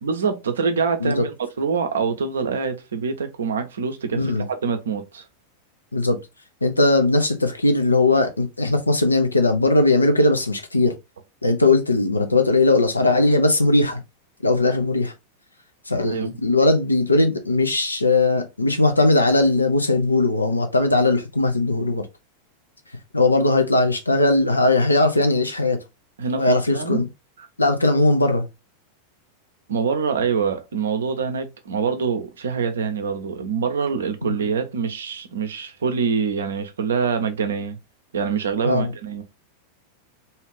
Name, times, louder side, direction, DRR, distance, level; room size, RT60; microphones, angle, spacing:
voice 1, 0.0-5.2 16.0-16.4 26.2-27.0 29.7-37.8 38.1-39.2, right 5 dB, 65° right, 0.5 m, -25 dB
voice 2, 6.6-10.9 11.4-14.0 14.4-15.1 15.9-22.1 23.1-25.8 26.4-27.1 27.6-28.5 34.2-34.4 38.6-38.9, left 2 dB, 80° left, 0.5 m, -19 dB
2.7 x 2.4 x 3.1 m
figure-of-eight pair, 90°, 0 cm